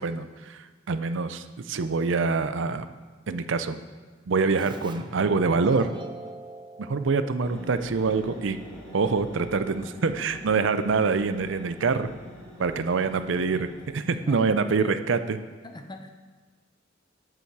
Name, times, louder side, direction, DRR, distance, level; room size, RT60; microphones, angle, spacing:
voice 1, 0.0-2.9 3.3-3.8 4.3-5.9 6.8-8.6 8.9-12.1 12.6-13.7 13.9-15.4, right 4 dB, 65° right, 11 dB, 0.5 m, -25 dB
Keyboard (musical), 4.6-8.0, right 2 dB, 25° right, 0.6 m, -42 dB
sound 1, 7.4-13.9, equal, 5° left, 3.6 m, -44 dB
voice 2, 13.3-13.7 14.1-15.0 15.6-16.1, left 1 dB, 25° left, 6 dB, 0.8 m, -42 dB
12.0 x 7.1 x 4.7 m, 1.4 s
head